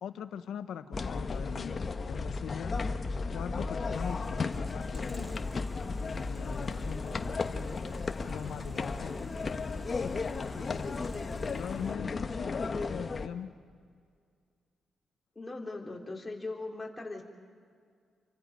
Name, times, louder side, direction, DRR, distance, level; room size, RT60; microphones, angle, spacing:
voice 1, 0.0-2.8 3.3-5.3 6.0-7.5 8.3-11.0 11.4-13.5, left 8 dB, 85° left, 9 dB, 1.1 m, -42 dB
sound 1, 0.9-13.3, left 4 dB, 40° left, 1.1 m, -34 dB
sound 2, 3.9-12.0, right 2 dB, 10° right, 1.1 m, -50 dB
voice 2, 15.4-17.2, left 2 dB, 20° left, -1 dB, 3.8 m, -39 dB
29.0 x 24.5 x 5.2 m, 2.1 s
cardioid pair, 105°, 0 cm